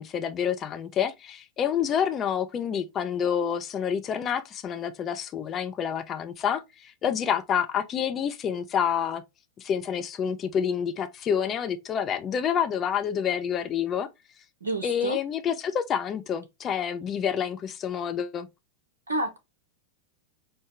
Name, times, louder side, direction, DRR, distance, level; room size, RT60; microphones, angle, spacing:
voice 1, 0.0-9.2 9.6-14.1 14.8-18.5, left 8 dB, 30° left, 0.5 m, -28 dB
voice 2, 14.6-15.2 19.1-19.4, right 2 dB, 75° right, 0.6 m, -29 dB
4.6 x 2.2 x 3.1 m
figure-of-eight pair, 90°, 0 cm